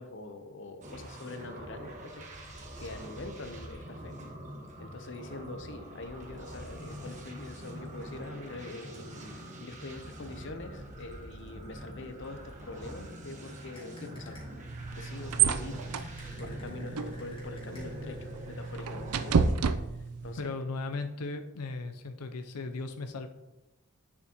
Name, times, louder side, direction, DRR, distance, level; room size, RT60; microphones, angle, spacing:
voice 1, 0.0-4.2 4.8-14.5 14.9-19.5 20.2-20.5, left 2 dB, 55° left, 7 dB, 0.8 m, -44 dB
sound 1, 0.8-19.5, equal, 35° right, 1.2 m, -44 dB
sound 2, 13.7-14.7 16.0-18.2, left 2 dB, 25° left, 2.4 m, -56 dB
sound 3, 14.7-20.4, right 6 dB, 80° right, 0.5 m, -31 dB
voice 2, 20.4-23.3, left 3 dB, 90° left, 7 dB, 0.6 m, -37 dB
8.8 x 7.2 x 3.0 m, 0.98 s
head